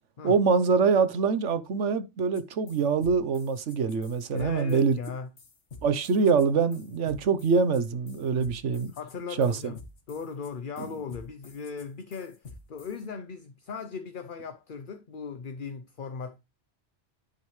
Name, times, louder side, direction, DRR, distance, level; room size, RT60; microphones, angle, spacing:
voice 1, 0.2-5.0 5.8-8.9 9.4-9.6 10.8-10.9, right 5 dB, 90° right, 1.3 m, -24 dB
sound 1, 2.3-2.4 2.7-13.0, left 4 dB, 75° left, 1.9 m, -49 dB
voice 2, 4.3-5.3 8.9-9.8 10.1-16.4, left 5 dB, 50° left, 0.9 m, -38 dB
10.0 x 8.7 x 3.2 m
omnidirectional pair, 1.2 m